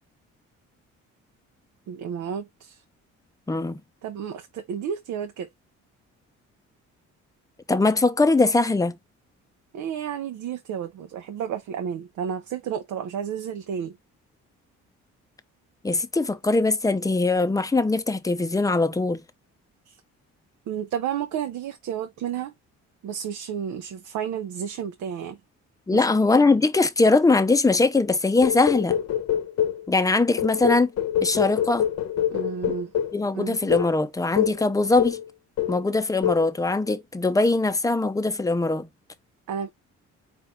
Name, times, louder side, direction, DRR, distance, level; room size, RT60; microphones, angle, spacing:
voice 1, 1.9-2.8 4.0-5.5 9.7-14.0 19.9-20.0 20.7-22.5 23.0-25.4 25.9-26.1 32.3-32.9 33.3-33.7 39.5-39.7, right 8 dB, 75° right, 0.7 m, -31 dB
voice 2, 3.5-3.8 7.7-9.0 15.8-19.2 25.9-29.0 29.9-30.9 31.2-31.9 33.1-35.2 35.7-38.9, left 3 dB, 10° left, 0.6 m, -21 dB
sound 1, 28.4-29.9 30.4-33.2 33.7-33.9 34.4-34.6 35.0-35.3 35.6-35.9 36.2-36.5, left 10 dB, 60° left, 1.0 m, -25 dB
4.5 x 3.2 x 3.6 m
cardioid pair, 90°, 30 cm